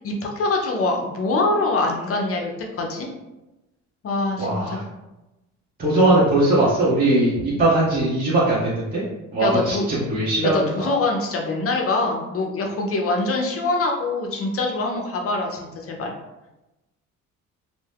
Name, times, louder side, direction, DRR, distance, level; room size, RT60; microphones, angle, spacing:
voice 1, 0.0-2.5 2.8-3.1 4.0-4.8 7.4-7.5 9.4-9.8 10.4-15.6 15.9-16.1, left 2 dB, 50° left, 1 dB, 0.7 m, -24 dB
voice 2, 4.4-4.8 5.8-9.0 9.3-10.9, right 1 dB, 30° right, -8 dB, 0.9 m, -20 dB
2.7 x 2.2 x 3.5 m, 0.99 s
cardioid pair, 90°, 30 cm